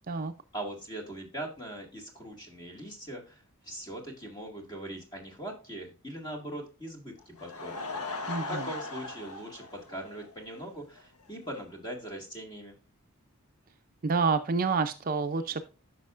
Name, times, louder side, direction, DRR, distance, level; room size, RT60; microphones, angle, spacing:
voice 1, 0.5-7.8 8.5-12.7, right 1 dB, 20° left, 1 dB, 1.9 m, -41 dB
Laughter / Crowd, 7.2-10.7 11.0-11.1 11.6-11.7 11.9-12.0, left 3 dB, 85° left, 1.1 m, -39 dB
voice 2, 8.3-8.7 14.0-15.7, right 4 dB, 40° right, 9 dB, 0.5 m, -28 dB
9.7 x 6.1 x 2.5 m, 0.33 s
head